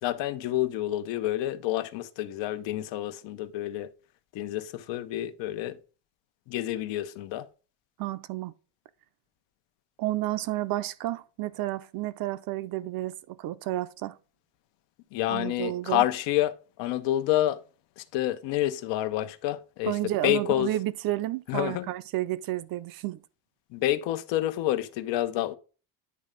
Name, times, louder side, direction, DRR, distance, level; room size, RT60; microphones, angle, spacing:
voice 1, 0.0-3.9 4.3-5.8 6.5-7.5 15.1-17.6 18.0-20.7 21.5-21.9 23.7-25.5, left 14 dB, 85° left, 0.9 m, -28 dB
voice 2, 8.0-8.5 10.0-14.2 15.3-16.1 19.8-23.2, right 15 dB, 55° right, 0.5 m, -31 dB
9.7 x 3.3 x 5.1 m
cardioid pair, 170°, 43 cm